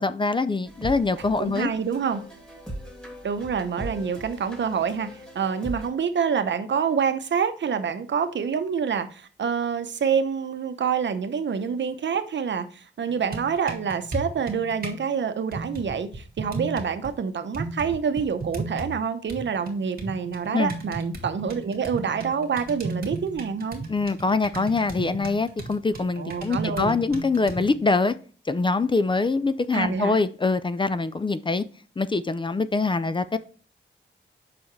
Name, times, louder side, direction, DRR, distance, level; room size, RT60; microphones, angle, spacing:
voice 1, 0.0-1.7 20.5-20.7 23.9-28.1 28.5-31.6 32.0-33.4, left 3 dB, 25° left, 0.4 m, -24 dB
sound 1, 0.7-5.9, right 1 dB, 5° left, 2.6 m, -39 dB
voice 2, 1.4-2.2 3.2-23.8 26.2-27.0 29.7-30.2, right 6 dB, 70° right, 0.8 m, -27 dB
sound 2, 13.1-15.0 15.5-17.1 17.5-19.0 19.3-27.8, right 2 dB, 50° right, 1.8 m, -35 dB
6.9 x 5.7 x 3.2 m
wide cardioid pair, 110°, 20 cm